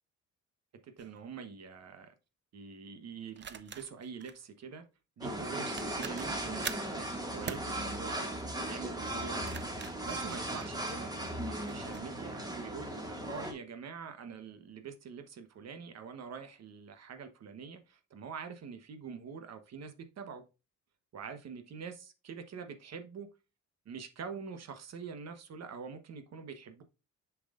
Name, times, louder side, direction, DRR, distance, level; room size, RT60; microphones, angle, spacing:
sound 1, 1.0-1.2 3.4-4.4 5.4-5.5 5.8-6.9 7.5-7.7 9.2-11.1 11.7-12.1, right 7 dB, 35° right, 0.7 m, -44 dB
voice 1, 1.0-2.1 2.5-4.8 5.2-11.1 11.4-20.4 21.1-23.3 23.8-26.8, right 6 dB, 60° right, 8 dB, 1.1 m, -45 dB
sound 2, 5.2-13.5, right 1 dB, 15° right, 1.9 m, -37 dB
7.0 x 5.9 x 2.5 m, 0.29 s
cardioid pair, 90°, 30 cm